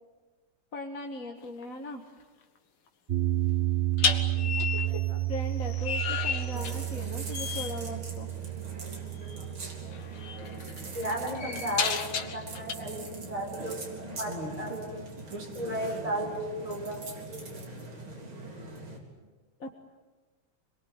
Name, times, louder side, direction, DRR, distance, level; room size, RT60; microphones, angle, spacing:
voice 1, 0.7-2.0 4.6-5.0 5.3-8.3 19.6-19.7, left 2 dB, 40° left, 2 dB, 2.0 m, -39 dB
sound 1, 1.4-1.6 4.0-7.1 7.3-7.8 9.2-9.4 9.9-12.7, left 6 dB, 75° left, 2.4 m, -33 dB
sound 2, 3.1-13.3, right 16 dB, 45° right, 0.8 m, -32 dB
voice 2, 4.3-4.6 4.9-5.2 10.9-15.0 15.5-17.0, right 1 dB, 15° right, 0 dB, 6.3 m, -35 dB
sound 3, 6.5-19.0, right 2 dB, 65° right, 4.7 m, -41 dB
27.5 x 21.5 x 9.6 m, 1.3 s
omnidirectional pair, 2.4 m